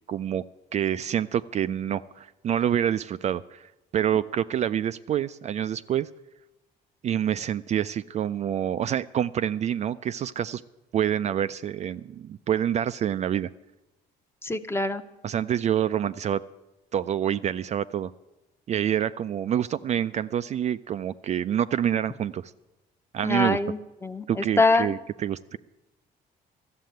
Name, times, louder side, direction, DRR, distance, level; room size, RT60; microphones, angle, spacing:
voice 1, 0.1-0.4 0.7-6.1 7.0-10.6 10.9-13.5 15.2-16.4 16.9-18.1 18.7-22.5 23.1-23.6 24.3-25.6, right 10 dB, 40° right, 12 dB, 0.4 m, -27 dB
voice 2, 14.4-15.0 23.2-24.9, left 2 dB, 15° left, 10 dB, 0.8 m, -24 dB
13.0 x 7.5 x 9.1 m, 1.0 s
cardioid pair, 110°, 17 cm